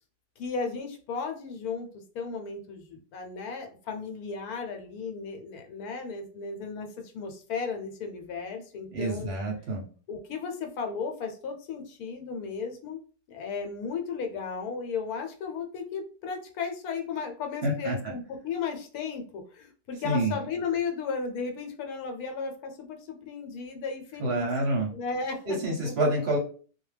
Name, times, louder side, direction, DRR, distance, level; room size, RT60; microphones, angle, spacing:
voice 1, 0.4-9.3 10.1-13.0 13.3-24.5 24.9-25.9, left 5 dB, 80° left, 5 dB, 1.1 m, -35 dB
voice 2, 8.9-9.8 17.6-18.1 20.0-20.3 24.2-24.9 25.5-26.4, right 1 dB, 55° right, -1 dB, 0.8 m, -27 dB
2.3 x 2.2 x 3.2 m, 0.40 s
omnidirectional pair, 1.6 m